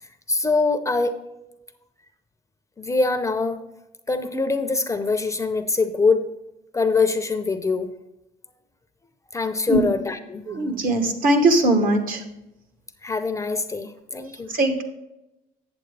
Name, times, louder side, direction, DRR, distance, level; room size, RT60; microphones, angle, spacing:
voice 1, 0.3-1.1 2.8-3.6 4.1-6.3 6.7-7.9 9.3-10.4 13.0-14.5, left 3 dB, 15° left, 8 dB, 0.6 m, -23 dB
voice 2, 10.5-12.2 14.5-14.8, right 2 dB, 55° right, 6 dB, 1.3 m, -20 dB
8.2 x 7.8 x 3.3 m, 0.93 s
cardioid pair, 110°, 17 cm